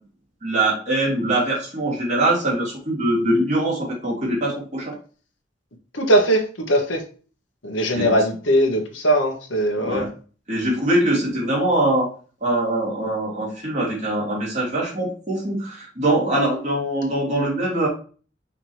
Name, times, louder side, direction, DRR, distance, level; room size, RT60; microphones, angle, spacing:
voice 1, 0.4-5.0 7.9-8.2 9.8-10.1 10.5-12.1 12.4-17.9, right 1 dB, 40° right, -5 dB, 3.2 m, -22 dB
voice 2, 5.9-7.0 7.6-10.0, right 1 dB, 90° left, 2 dB, 1.7 m, -20 dB
5.8 x 3.8 x 4.6 m, 0.38 s
head